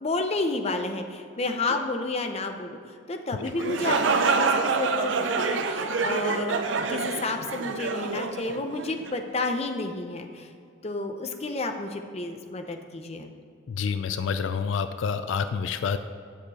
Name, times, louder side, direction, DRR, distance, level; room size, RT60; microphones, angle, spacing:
voice 1, 0.0-6.6 6.9-10.5 10.8-13.3, left 2 dB, 35° left, 6 dB, 0.6 m, -31 dB
sound 1, 3.5-9.2, right 4 dB, 75° right, 0.6 m, -27 dB
voice 2, 13.7-16.0, left 6 dB, 80° left, 10 dB, 0.4 m, -28 dB
9.2 x 6.7 x 4.1 m, 2.3 s
head